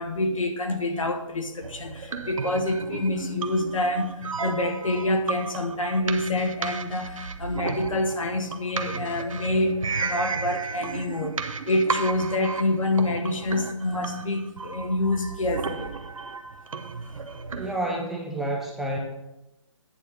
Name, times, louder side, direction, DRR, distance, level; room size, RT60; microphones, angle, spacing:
voice 1, 0.0-9.8 10.0-15.9, left 1 dB, 80° left, 5 dB, 1.6 m, -27 dB
sound 1, 1.6-17.8, right 4 dB, 90° right, 0.9 m, -34 dB
voice 2, 17.5-19.0, right 1 dB, ahead, -2 dB, 0.5 m, -29 dB
9.6 x 4.1 x 6.8 m, 0.92 s
hypercardioid pair, 160°, 17 cm